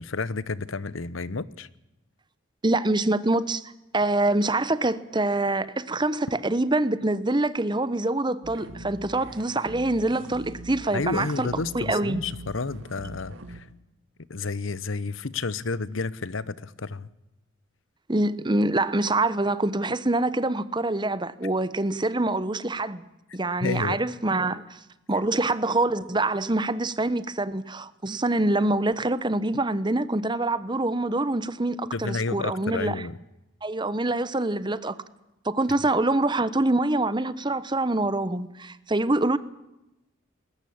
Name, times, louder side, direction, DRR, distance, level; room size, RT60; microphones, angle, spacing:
voice 1, 0.0-1.7 10.9-13.7 14.3-17.1 23.6-24.0 31.9-33.2, left 3 dB, 80° left, 1.0 m, -31 dB
voice 2, 2.6-3.6 3.9-11.5 11.7-12.2 18.1-23.0 23.3-24.8 25.1-33.0 33.6-35.0 35.4-39.4, right 2 dB, 25° right, 1.0 m, -25 dB
sound 1, 8.4-13.6, right 1 dB, 80° right, 2.9 m, -42 dB
21.0 x 18.5 x 8.7 m
head